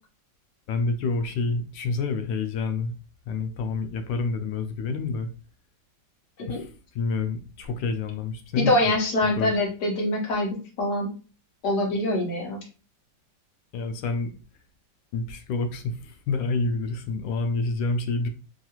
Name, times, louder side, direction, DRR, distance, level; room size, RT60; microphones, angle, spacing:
voice 1, 0.7-2.9 3.3-5.3 6.5-9.0 9.4-9.5 13.7-14.3 15.1-18.3, left 3 dB, 85° left, 7 dB, 1.3 m, -28 dB
voice 2, 8.6-10.5 10.8-11.1 11.6-12.6, left 1 dB, 65° left, 0 dB, 1.4 m, -24 dB
3.6 x 2.3 x 2.8 m, 0.35 s
omnidirectional pair, 2.0 m